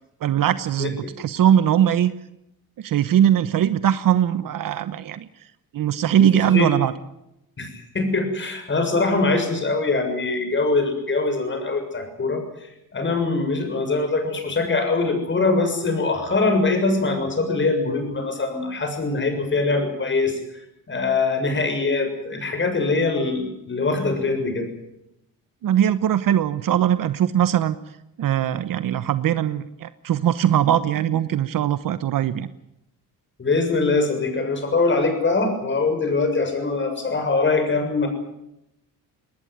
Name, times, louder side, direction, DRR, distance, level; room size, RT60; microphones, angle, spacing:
voice 1, 0.2-2.1 2.8-5.3 5.7-6.9 25.6-27.7 28.2-32.5, right 10 dB, 65° right, 13 dB, 1.1 m, -20 dB
voice 2, 6.2-6.7 7.6-20.4 20.9-24.7 33.4-38.1, left 3 dB, 30° left, 6 dB, 6.9 m, -23 dB
21.0 x 19.0 x 9.4 m, 0.83 s
cardioid pair, 120°, 36 cm